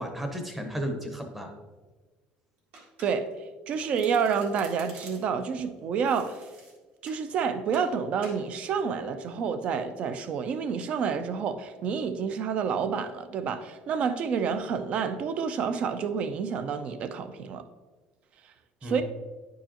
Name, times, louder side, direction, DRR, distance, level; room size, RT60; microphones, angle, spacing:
voice 1, 0.0-1.5 18.8-19.0, equal, 5° right, 0.8 m, -33 dB
Domestic sounds home sounds, 2.7-3.4 3.7-5.4 6.0-7.2 7.7-7.9 8.2-8.4, right 3 dB, 55° right, 1.8 m, -50 dB
voice 2, 3.7-6.4 7.0-17.6 18.8-19.0, right 6 dB, 40° right, 0.5 m, -29 dB
10.0 x 4.7 x 2.9 m
cardioid pair, 170°, 3 cm